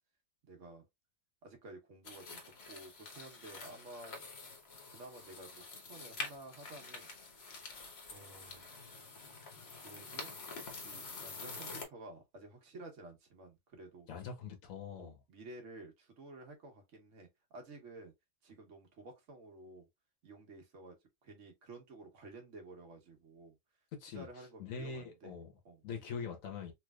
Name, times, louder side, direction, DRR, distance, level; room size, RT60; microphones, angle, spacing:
voice 1, 0.5-0.8 1.4-4.3 4.9-7.1 7.4-7.5 8.1-8.9 9.8-10.3 10.8-14.1 15.0-18.1 18.4-19.9 20.2-21.0 21.2-23.6 24.1-25.4 25.6-25.8, right 2 dB, 65° right, 1.4 m, -52 dB
sound 1, 2.0-11.8, left 3 dB, 55° left, 1.2 m, -47 dB
voice 2, 14.1-15.1 23.9-25.5 25.8-26.7, left 6 dB, 85° left, 1.3 m, -43 dB
3.2 x 3.2 x 2.2 m
omnidirectional pair, 1.4 m